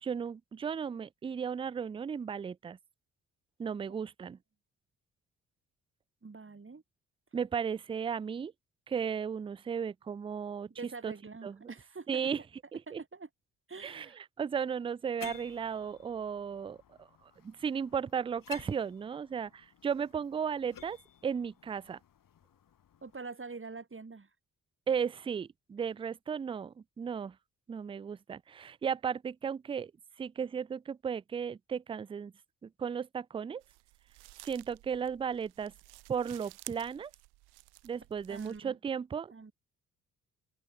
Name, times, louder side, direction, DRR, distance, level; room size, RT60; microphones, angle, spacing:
voice 1, 0.0-2.8 3.6-4.4 7.3-8.5 8.9-10.7 11.0-11.1 11.4-11.6 12.1-12.4 12.7-13.0 13.8-17.1 17.4-21.0 21.2-22.0 24.9-27.4 27.7-29.9 30.2-32.3 32.6-33.6 34.4-35.7 36.1-37.1 37.8-39.5, right 7 dB, 15° right, 0.3 m, -35 dB
voice 2, 6.2-6.8 10.8-12.3 12.9-13.3 13.7-14.2 23.0-24.3 38.3-38.8 39.3-39.5, right 4 dB, 30° right, 4.8 m, -45 dB
sound 1, 15.2-23.2, left 9 dB, 55° left, 2.4 m, -53 dB
sound 2, 33.6-38.6, right 22 dB, 75° right, 0.8 m, -53 dB
open air
hypercardioid pair, 45°, 39 cm